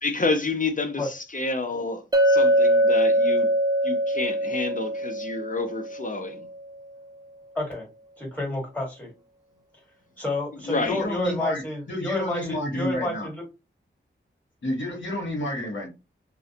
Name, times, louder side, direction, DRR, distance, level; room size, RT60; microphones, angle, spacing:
voice 1, 0.0-3.5 3.8-6.5 10.7-11.0, left 3 dB, 40° left, 0.5 m, -29 dB
Chink clink, 2.1-6.3, right 1 dB, 20° right, 0.3 m, -22 dB
voice 2, 7.5-7.9 8.2-9.1 10.2-13.4, left 2 dB, 5° left, 1.5 m, -30 dB
voice 3, 10.8-11.6 11.9-13.3 14.6-15.9, left 1 dB, 65° left, 1.1 m, -30 dB
2.4 x 2.0 x 2.7 m
wide cardioid pair, 65°, 21 cm